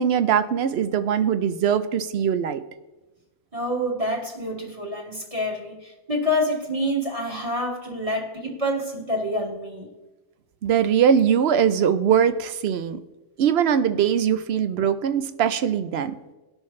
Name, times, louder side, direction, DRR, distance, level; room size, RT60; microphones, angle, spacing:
voice 1, 0.0-2.6 10.6-13.0 13.4-16.2, right 8 dB, 65° right, 11 dB, 0.7 m, -21 dB
voice 2, 3.5-9.9, left 1 dB, 25° right, -1 dB, 1.9 m, -27 dB
18.5 x 6.3 x 3.2 m, 1.1 s
omnidirectional pair, 1.3 m